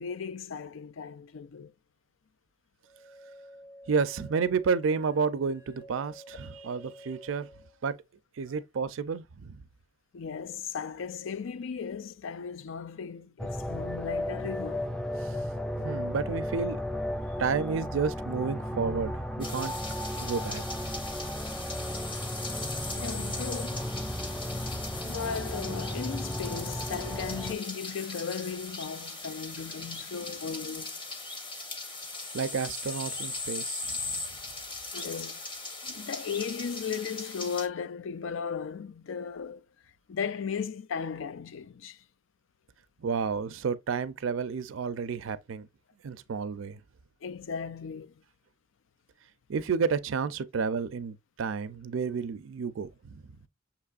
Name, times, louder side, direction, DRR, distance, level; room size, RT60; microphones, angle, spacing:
voice 1, 0.0-1.7 10.1-14.9 22.9-23.9 25.0-31.0 34.9-35.4 35.8-39.6 40.1-42.0 47.2-48.1, left 6 dB, 80° left, 0.4 m, -36 dB
sound 1, 2.8-7.8, equal, 50° left, 1.4 m, -51 dB
voice 2, 3.9-7.5 7.8-8.0 8.4-9.6 15.8-16.8 17.4-19.7 20.2-20.6 32.3-33.9 43.0-45.7 46.0-46.8 49.5-53.2, right 5 dB, 85° right, 0.4 m, -31 dB
sound 2, 13.4-27.6, left 1 dB, 5° left, 0.3 m, -34 dB
sound 3, 19.4-37.7, left 3 dB, 25° left, 1.0 m, -39 dB
6.7 x 3.0 x 2.4 m
head